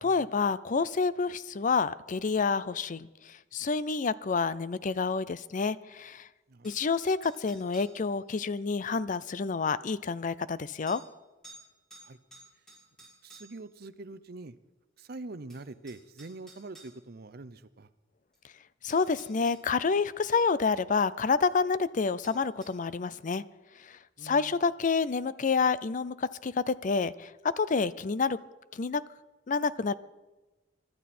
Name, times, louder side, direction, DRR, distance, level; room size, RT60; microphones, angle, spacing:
voice 1, 0.0-6.3 6.6-11.0 18.8-23.4 23.8-28.4 28.7-29.0 29.5-29.9, left 4 dB, 40° left, 17 dB, 0.5 m, -28 dB
sound 1, 6.6-8.0 9.4-9.5 10.9-11.1 11.4-11.6 11.9-13.7 15.0-15.1 15.5-16.9 18.3-18.4 18.9-19.6 22.2-22.8, right 2 dB, ahead, 6.3 m, -53 dB
voice 2, 13.2-14.5 15.0-17.9 24.2-24.5, right 2 dB, 55° right, 14 dB, 0.7 m, -44 dB
24.0 x 12.5 x 4.3 m, 1.1 s
head